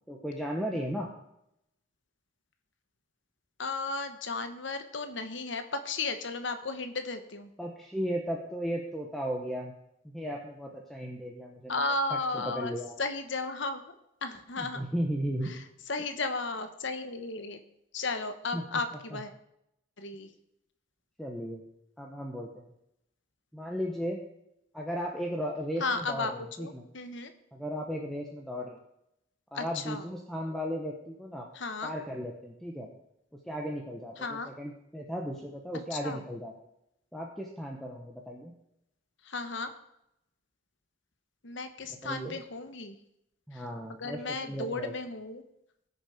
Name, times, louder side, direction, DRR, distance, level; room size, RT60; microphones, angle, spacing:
voice 1, 0.1-1.1 7.6-9.7 10.0-11.8 12.1-12.9 14.6-15.5 18.5-18.6 19.1-19.2 21.2-21.6 22.0-22.7 23.5-24.2 24.7-26.9 27.5-28.8 29.5-31.5 31.8-32.9 33.5-36.5 37.1-38.5 42.0-42.4 43.5-44.9, equal, ahead, -1 dB, 1.0 m, -35 dB
voice 2, 3.6-7.5 11.7-13.9 14.2-14.8 15.4-17.6 17.9-19.3 20.0-20.3 25.8-26.3 26.6-27.3 29.5-30.0 31.5-31.9 34.2-34.5 35.9-36.2 39.2-39.7 41.4-43.0 43.5-43.6 43.9-45.4, left 3 dB, 60° left, 8 dB, 1.1 m, -34 dB
18.0 x 6.6 x 5.0 m, 0.81 s
head